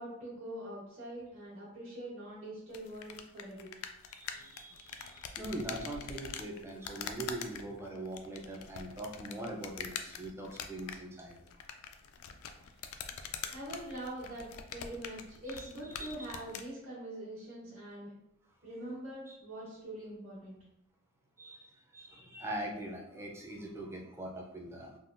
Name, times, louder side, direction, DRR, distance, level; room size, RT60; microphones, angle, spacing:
voice 1, 0.0-3.7 13.5-18.1 18.6-20.6, right 1 dB, 70° right, -11 dB, 1.2 m, -44 dB
sound 1, 2.7-16.7, left 7 dB, 80° left, 0.3 m, -45 dB
voice 2, 4.1-11.4 15.5-16.1 19.3-19.4 21.4-25.0, right 1 dB, 10° right, -1 dB, 0.4 m, -42 dB
3.5 x 2.3 x 2.5 m, 0.82 s
head